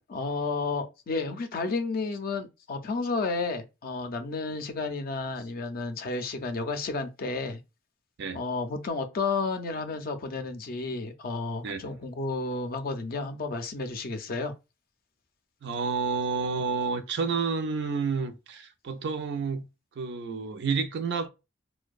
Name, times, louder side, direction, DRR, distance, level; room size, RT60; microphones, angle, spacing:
voice 1, 0.1-7.6 8.3-14.5, left 3 dB, 50° left, 0.4 m, -32 dB
voice 2, 15.6-19.6 20.0-21.3, right 5 dB, 65° right, 0.4 m, -30 dB
2.6 x 2.1 x 2.3 m
head